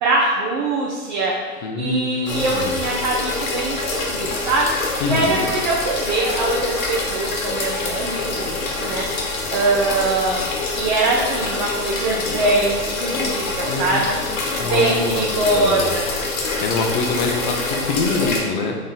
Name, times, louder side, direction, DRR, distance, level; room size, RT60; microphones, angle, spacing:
voice 1, 0.0-14.2 14.6-16.0, right 2 dB, 30° right, -3 dB, 0.5 m, -23 dB
voice 2, 1.6-2.8 5.0-5.5 13.7-14.0 14.6-15.9 16.6-18.8, left 4 dB, 35° left, 2 dB, 0.6 m, -25 dB
sound 1, 2.3-18.4, left 3 dB, 60° left, 1.3 m, -26 dB
4.1 x 3.1 x 3.9 m, 1.4 s
hypercardioid pair, 130°, 45 cm